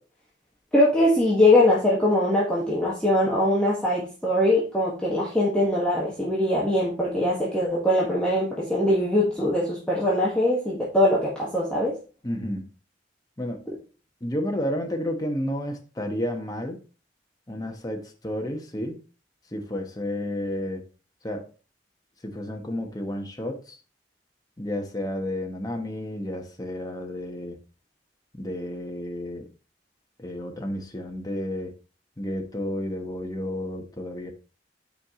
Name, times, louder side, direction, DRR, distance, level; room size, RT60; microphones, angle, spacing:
voice 1, 0.7-11.9, left 1 dB, 5° left, -6 dB, 1.5 m, -22 dB
voice 2, 12.2-12.7 13.4-13.7 14.2-16.8 17.5-19.0 19.5-20.8 21.2-21.5 22.2-23.8 24.6-27.6 28.3-29.5 30.2-31.7 32.2-34.3, left 1 dB, 20° left, 3 dB, 1.2 m, -31 dB
8.6 x 4.8 x 3.7 m, 0.35 s
head